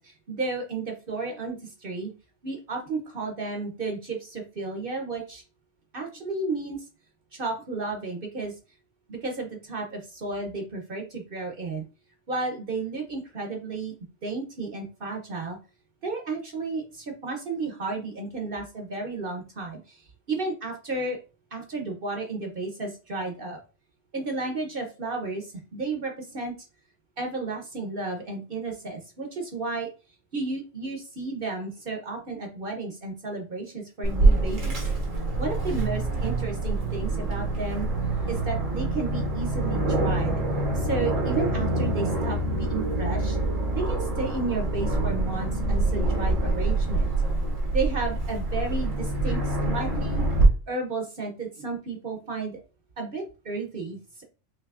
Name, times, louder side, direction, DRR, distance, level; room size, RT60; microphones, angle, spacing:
voice 1, 0.0-2.1 2.4-5.4 5.9-6.8 7.3-8.6 9.1-11.8 12.3-13.9 14.2-15.6 16.0-21.2 21.5-23.6 24.1-26.5 27.2-29.9 30.3-34.8 35.4-37.9 38.3-40.4 40.7-43.4 43.7-47.1 47.7-50.3 50.7-52.6 53.0-54.2, right 3 dB, 50° right, 2 dB, 0.9 m, -32 dB
Aircraft, 34.0-50.4, right 2 dB, 90° right, 1.6 m, -26 dB
5.8 x 2.8 x 2.4 m, 0.33 s
omnidirectional pair, 1.3 m